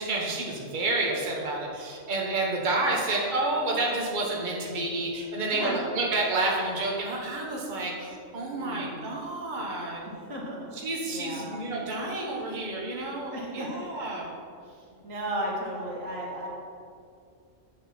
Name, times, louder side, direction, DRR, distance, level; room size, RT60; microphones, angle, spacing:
voice 1, 0.0-10.0 10.8-14.3, right 2 dB, 40° right, -2 dB, 1.2 m, -29 dB
voice 2, 8.5-9.1 10.3-10.7 11.1-11.5 13.3-13.8 14.7-16.5, right 1 dB, 85° right, -3 dB, 1.9 m, -35 dB
7.9 x 4.3 x 5.8 m, 2.3 s
omnidirectional pair, 1.3 m